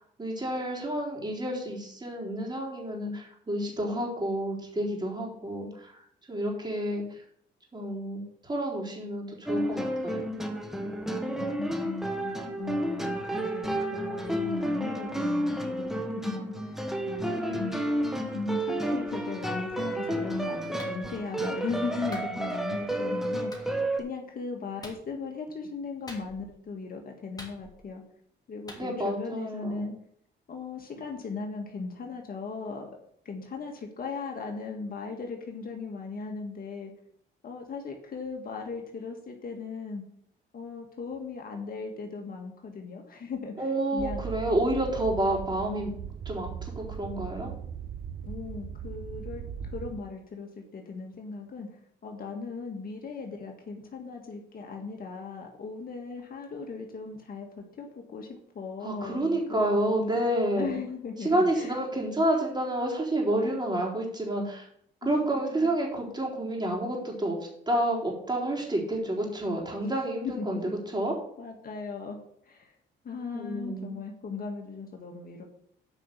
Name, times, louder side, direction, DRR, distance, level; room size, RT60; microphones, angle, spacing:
voice 1, 0.0-6.0 6.3-7.2 7.7-10.3 17.3-18.3 28.8-29.9 43.6-45.9 46.3-47.5 58.8-60.7 61.2-64.7 65.0-67.4 67.7-71.1 73.3-74.0, right 1 dB, 20° right, -2 dB, 4.0 m, -29 dB
sound 1, 9.5-24.0, right 1 dB, ahead, 1.5 m, -31 dB
voice 2, 11.3-16.8 17.1-17.7 18.3-28.0 28.5-29.9 30.5-32.9 33.3-36.9 37.4-40.0 40.5-43.7 43.9-44.2 48.2-60.1 60.6-61.8 65.0-65.7 70.2-70.8 71.4-72.2 72.4-72.7 73.0-75.4, left 4 dB, 50° left, 2 dB, 1.8 m, -38 dB
Clapping, 20.8-21.0 22.1-22.3 23.5-23.7 24.8-25.0 26.1-26.5 27.4-27.9 28.7-28.8, left 1 dB, 20° left, 3.0 m, -45 dB
sound 2, 44.0-50.0, right 8 dB, 45° right, 0.6 m, -38 dB
9.1 x 5.5 x 7.0 m, 0.68 s
cardioid pair, 90°, 20 cm